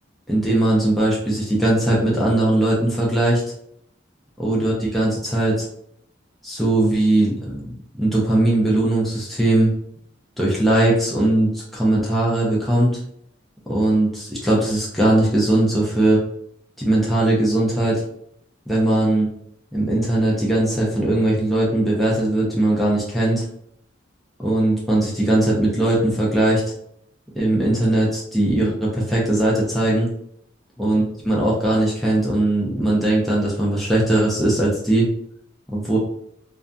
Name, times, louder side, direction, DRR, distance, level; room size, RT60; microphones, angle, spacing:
voice 1, 0.3-3.4 4.4-5.7 6.4-9.7 10.4-13.0 13.7-16.2 16.8-18.0 18.7-19.3 19.7-23.4 24.4-26.6 27.3-30.1 30.8-35.1 35.7-36.0, right 1 dB, ahead, -6 dB, 0.5 m, -19 dB
2.6 x 2.5 x 2.2 m, 0.69 s
head